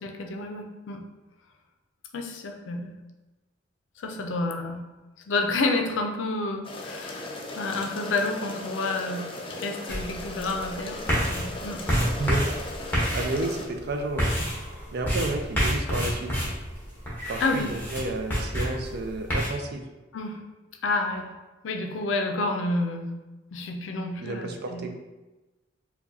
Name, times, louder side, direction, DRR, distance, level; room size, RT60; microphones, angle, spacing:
voice 1, 0.0-1.0 2.1-3.0 4.0-4.8 5.3-7.3 7.6-9.3 9.6-11.8 13.0-13.2 17.4-17.7 20.1-20.4 20.8-21.3 21.6-23.1 23.5-24.9, left 2 dB, 90° left, 4 dB, 0.4 m, -29 dB
sound 1, 6.6-13.7, left 2 dB, 30° left, 0.4 m, -38 dB
sound 2, 9.9-19.5, equal, 10° left, 0.9 m, -29 dB
voice 2, 12.2-12.5 13.1-14.3 14.9-16.3 17.3-19.8 24.2-24.9, right 2 dB, 60° right, 4 dB, 0.4 m, -31 dB
4.5 x 2.2 x 2.6 m, 1.1 s
head